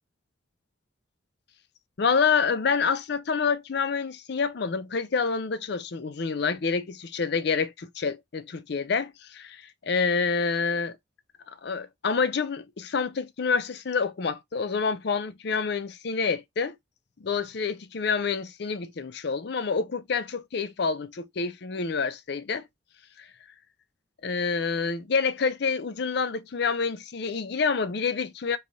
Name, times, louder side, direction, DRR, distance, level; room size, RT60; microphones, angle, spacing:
voice 1, 2.0-11.0 11.6-16.7 17.2-22.7 23.2-23.3 24.2-28.6, left 5 dB, 55° left, 0.5 m, -27 dB
3.3 x 2.3 x 3.9 m
head